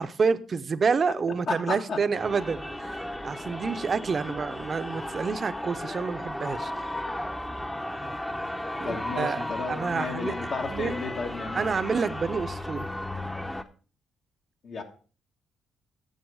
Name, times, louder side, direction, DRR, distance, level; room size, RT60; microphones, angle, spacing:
voice 1, 0.0-6.9 8.8-9.4 9.7-10.3 10.7-10.9 11.5-12.9, right 5 dB, 40° right, 12 dB, 0.7 m, -28 dB
voice 2, 1.3-2.0 4.2-4.3 8.8-11.7 14.6-14.8, left 4 dB, 55° left, 3 dB, 1.4 m, -33 dB
sound 1, 2.1-13.6, left 1 dB, 10° left, 0.7 m, -35 dB
9.1 x 6.8 x 4.8 m, 0.38 s
cardioid pair, 90°, 0 cm